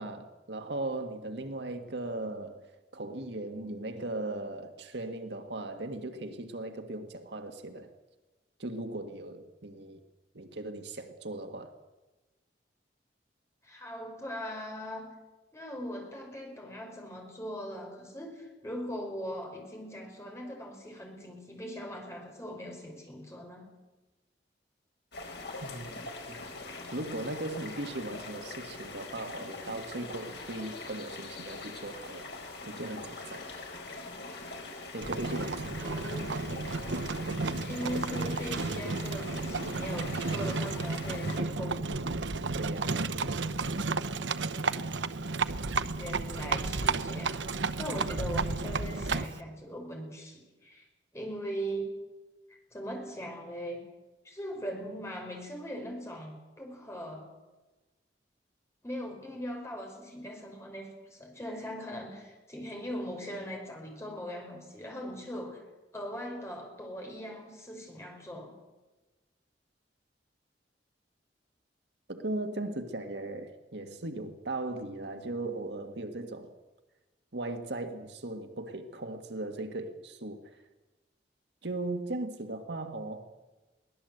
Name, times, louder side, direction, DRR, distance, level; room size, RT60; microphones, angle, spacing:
voice 1, 0.0-2.6 2.9-7.9 8.6-10.0 10.3-11.7 25.6-26.0 26.3-26.4 26.9-33.5 34.9-36.1 42.5-43.0 72.1-76.5 77.3-80.5 81.6-83.2, right 2 dB, 70° right, 6 dB, 1.7 m, -38 dB
voice 2, 13.6-15.1 15.5-23.7 35.8-36.3 37.6-41.9 45.9-47.5 47.8-50.9 51.1-51.9 52.7-53.8 54.2-57.3 58.8-65.6 65.9-68.5, equal, 15° left, 1 dB, 5.5 m, -40 dB
sound 1, 25.1-41.4, left 3 dB, 70° left, 5.1 m, -43 dB
Livestock farm animals working animals, 35.0-49.4, right 3 dB, 90° right, 0.9 m, -32 dB
23.0 x 18.0 x 8.0 m, 1.1 s
head